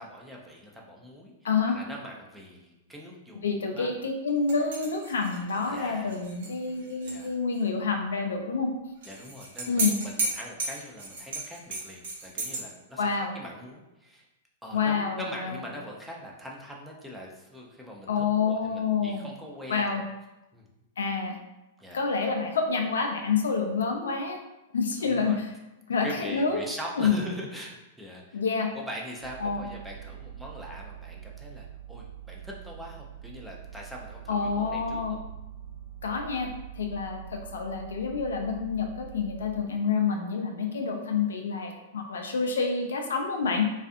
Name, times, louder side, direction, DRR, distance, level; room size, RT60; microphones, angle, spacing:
voice 1, 0.0-1.3 1.7-4.0 5.7-6.1 7.0-7.3 9.1-14.2 14.6-20.0 20.5-20.7 21.8-22.0 25.0-25.4 26.0-28.4 28.7-35.2, equal, 5° right, -2 dB, 0.5 m, -42 dB
voice 2, 1.4-1.8 3.4-8.7 9.7-10.0 13.0-13.3 14.7-15.6 18.1-19.3 19.7-20.0 21.0-21.4 21.9-24.4 24.7-25.5 25.9-26.6 27.0-27.1 28.3-28.7 29.4-29.6 34.3-35.1 36.0-43.7, left 5 dB, 80° left, 3 dB, 0.4 m, -28 dB
sound 1, 4.5-7.3 7.5-7.6 9.0-12.6, right 2 dB, 75° right, 0.7 m, -34 dB
sound 2, 29.2-39.6, right 9 dB, 50° right, 1.0 m, -44 dB
2.4 x 2.3 x 2.6 m, 0.97 s
hypercardioid pair, 110°, 0 cm